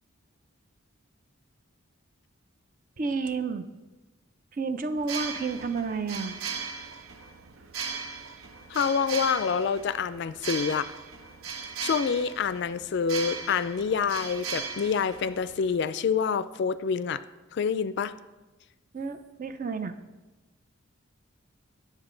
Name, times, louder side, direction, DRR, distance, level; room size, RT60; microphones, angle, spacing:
voice 1, 3.0-3.7 4.5-6.4 18.9-20.0, right 4 dB, 40° right, 10 dB, 0.5 m, -31 dB
sound 1, 5.0-15.8, right 5 dB, 85° right, 0.7 m, -38 dB
voice 2, 8.7-10.9 11.8-17.2 17.5-18.1, left 6 dB, 55° left, 14 dB, 0.3 m, -27 dB
9.9 x 7.3 x 3.8 m, 1.1 s
head